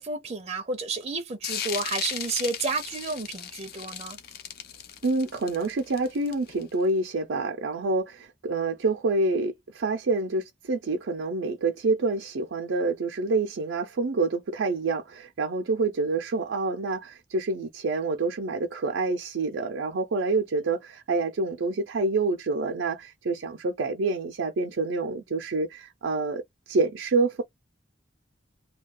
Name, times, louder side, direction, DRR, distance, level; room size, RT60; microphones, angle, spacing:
voice 1, 0.0-4.2, right 3 dB, 30° right, 0.5 m, -31 dB
sound 1, 1.4-6.7, left 9 dB, 55° left, 0.5 m, -36 dB
voice 2, 5.0-27.4, right 3 dB, 85° right, 0.5 m, -27 dB
2.3 x 2.3 x 3.6 m
head